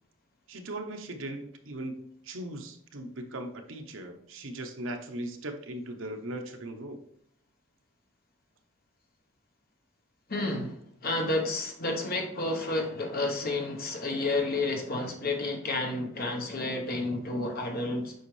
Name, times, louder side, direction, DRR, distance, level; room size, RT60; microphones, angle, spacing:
voice 1, 0.5-7.0, right 1 dB, 65° right, 5 dB, 0.9 m, -39 dB
voice 2, 10.3-18.1, left 2 dB, 45° left, 3 dB, 1.0 m, -31 dB
8.0 x 5.3 x 3.2 m, 0.65 s
head